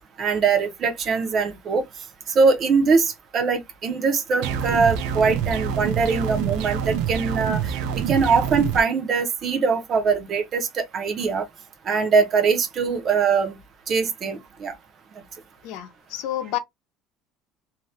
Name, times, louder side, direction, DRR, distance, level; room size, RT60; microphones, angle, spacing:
voice 1, 0.2-1.8 2.3-11.4 11.9-13.6 13.9-14.7, right 5 dB, 30° right, 0.6 m, -22 dB
sound 1, 4.4-8.8, right 8 dB, 70° right, 0.4 m, -26 dB
voice 2, 15.6-16.6, left 12 dB, 65° left, 0.6 m, -29 dB
2.7 x 2.2 x 3.1 m
cardioid pair, 165°, 0 cm